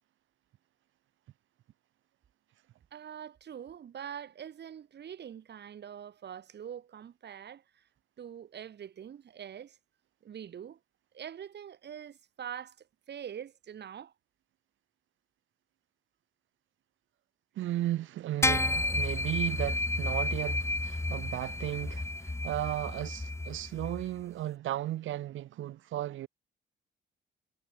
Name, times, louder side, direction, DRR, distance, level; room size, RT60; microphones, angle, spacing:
voice 1, 2.9-7.8 8.2-9.8 10.2-10.8 11.1-14.1, right 9 dB, 60° right, 4.7 m, -44 dB
voice 2, 17.5-26.3, right 13 dB, 80° right, 2.6 m, -35 dB
sound 1, 18.4-24.0, left 2 dB, 15° left, 3.6 m, -31 dB
cardioid pair, 90°, 20 cm